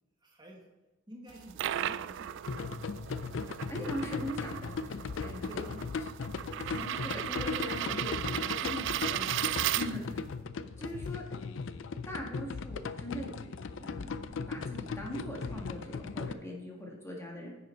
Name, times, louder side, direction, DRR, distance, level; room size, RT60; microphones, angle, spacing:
voice 1, 0.2-0.6 1.1-3.0 5.4-5.7 6.7-7.2 9.1-9.6 9.9-11.2 16.8-16.9, right 1 dB, 20° right, -1 dB, 1.5 m, -52 dB
sound 1, 1.3-10.3, right 11 dB, 65° right, 0.3 m, -36 dB
sound 2, 2.5-16.3, left 4 dB, 70° left, 0.5 m, -38 dB
voice 2, 3.5-5.6 6.5-9.2 9.7-10.0 10.8-11.2 12.0-13.3 13.8-17.6, equal, 15° left, -2 dB, 1.7 m, -41 dB
10.0 x 6.8 x 4.5 m, 1.1 s
head